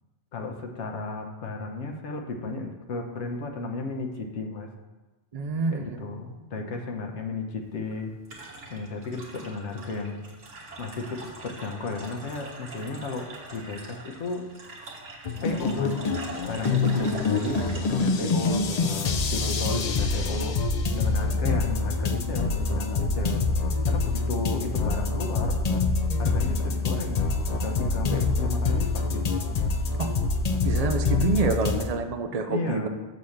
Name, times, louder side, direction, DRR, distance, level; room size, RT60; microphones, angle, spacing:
voice 1, 0.3-4.7 5.7-8.1 8.7-10.2 10.8-14.5 15.4-16.0 16.5-20.6 21.0-23.4 23.9-25.6 26.2-27.3 27.6-29.3 32.5-32.9, left 3 dB, 75° left, 3 dB, 1.2 m, -34 dB
voice 2, 5.3-6.1 30.0-30.1 30.6-32.9, right 3 dB, 45° right, 6 dB, 0.6 m, -27 dB
sound 1, 7.6-19.3, right 2 dB, 80° right, 1.7 m, -43 dB
sound 2, 15.3-31.8, left 3 dB, 45° left, 0.6 m, -26 dB
7.1 x 4.0 x 6.4 m, 1.1 s
omnidirectional pair, 1.2 m